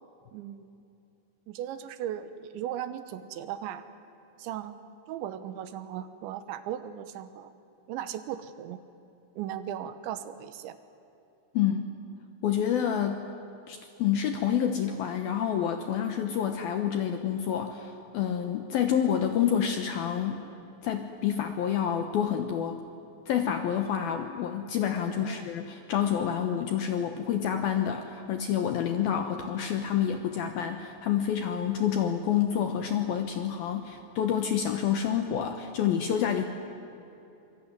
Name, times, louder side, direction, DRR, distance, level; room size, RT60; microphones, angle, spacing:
voice 1, 0.3-0.7 1.5-3.8 4.4-4.8 5.1-7.5 7.9-8.8 9.4-10.8 25.0-25.5, right 10 dB, 75° right, 12 dB, 3.1 m, -37 dB
voice 2, 11.5-11.9 12.4-13.3 13.7-20.4 20.8-22.8 23.3-36.4, left 9 dB, 75° left, 6 dB, 2.3 m, -28 dB
26.0 x 24.0 x 9.5 m, 2.8 s
omnidirectional pair, 5.6 m